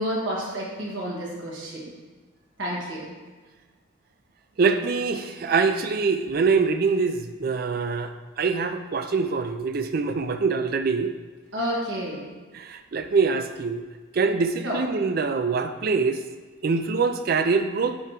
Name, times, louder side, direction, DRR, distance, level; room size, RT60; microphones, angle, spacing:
voice 1, 0.0-1.9 2.6-3.1 11.5-12.3 14.6-14.8, equal, 70° right, -3 dB, 1.5 m, -30 dB
voice 2, 4.6-11.1 12.5-13.8 14.1-16.2 16.6-18.0, right 4 dB, 45° right, 8 dB, 0.4 m, -24 dB
9.6 x 3.5 x 2.9 m, 1.4 s
head